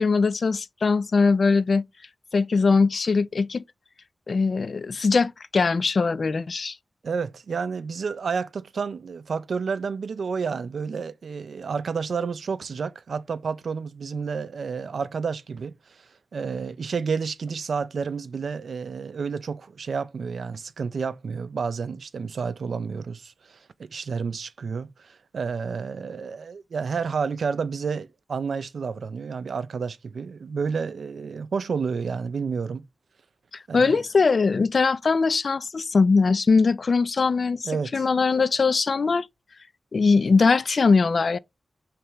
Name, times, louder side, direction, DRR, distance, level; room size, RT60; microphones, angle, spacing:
voice 1, 0.0-1.9 2.3-3.6 4.3-6.8 33.7-39.3 39.9-41.4, left 4 dB, 65° left, 0.3 m, -21 dB
voice 2, 7.0-32.9 33.7-34.0 37.6-38.1, right 5 dB, 80° right, 0.3 m, -30 dB
3.3 x 2.9 x 4.7 m
cardioid pair, 55°, 0 cm